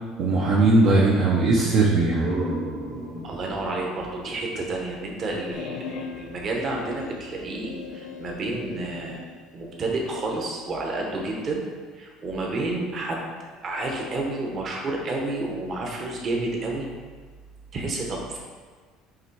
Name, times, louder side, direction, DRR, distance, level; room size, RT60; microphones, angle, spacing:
voice 1, 0.2-2.3, right 2 dB, 50° right, -4 dB, 0.8 m, -19 dB
sound 1, 2.1-5.5, right 1 dB, 15° right, 1.0 m, -34 dB
voice 2, 3.2-9.3 9.5-11.6 11.9-13.3 13.6-16.9 17.7-18.4, right 2 dB, 35° right, -1 dB, 1.1 m, -30 dB
sound 2, 5.5-9.3, left 4 dB, 65° left, 0.8 m, -38 dB
7.4 x 3.2 x 4.8 m, 1.5 s
cardioid pair, 150°, 0 cm